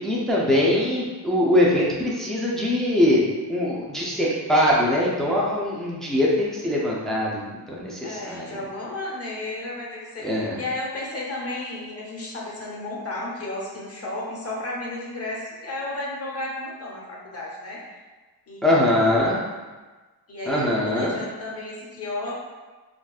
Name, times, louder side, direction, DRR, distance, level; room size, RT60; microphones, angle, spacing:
voice 1, 0.0-3.2 3.5-8.5 10.2-10.6 18.6-19.4 20.5-21.2, left 1 dB, ahead, -5 dB, 0.5 m, -22 dB
voice 2, 8.0-17.8 18.5-19.1 20.3-22.3, left 2 dB, 35° left, -4 dB, 0.9 m, -33 dB
3.5 x 2.6 x 2.4 m, 1.3 s
cardioid pair, 100°, 43 cm